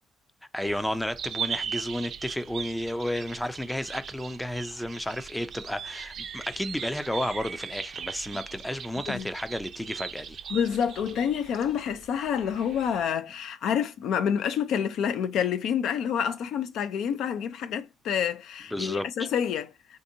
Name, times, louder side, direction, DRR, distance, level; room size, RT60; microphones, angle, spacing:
voice 1, 0.5-10.4 18.7-19.1, left 1 dB, 5° left, 0.4 m, -32 dB
sound 1, 0.6-13.1, right 7 dB, 65° right, 0.4 m, -39 dB
voice 2, 10.5-19.7, left 8 dB, 80° left, 0.4 m, -28 dB
3.5 x 2.6 x 2.7 m
cardioid pair, 90°, 0 cm